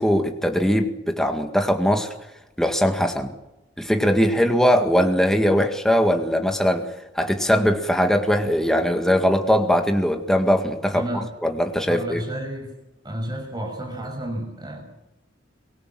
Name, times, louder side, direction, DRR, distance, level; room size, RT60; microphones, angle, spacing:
voice 1, 0.0-2.1 2.6-3.3 3.8-6.9 7.2-11.1 11.4-12.2, equal, 5° left, 4 dB, 1.9 m, -20 dB
voice 2, 10.9-11.3 11.9-12.7 13.0-14.8, right 1 dB, 20° right, 3 dB, 6.2 m, -31 dB
24.5 x 19.0 x 7.5 m, 0.96 s
head